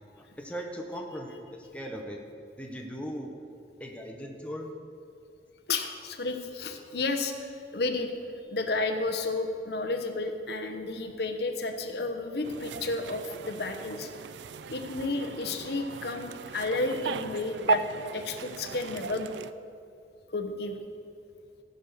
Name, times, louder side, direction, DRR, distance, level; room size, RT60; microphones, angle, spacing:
voice 1, 0.2-2.2 2.6-3.3 3.8-4.7, equal, 5° left, 1 dB, 0.9 m, -38 dB
voice 2, 5.7-8.1 8.5-14.1 14.7-17.8 18.1-19.3 20.3-20.8, left 3 dB, 65° left, 5 dB, 0.9 m, -32 dB
sound 1, 12.4-19.5, right 5 dB, 85° right, 0.4 m, -36 dB
15.5 x 5.4 x 6.6 m, 2.4 s
head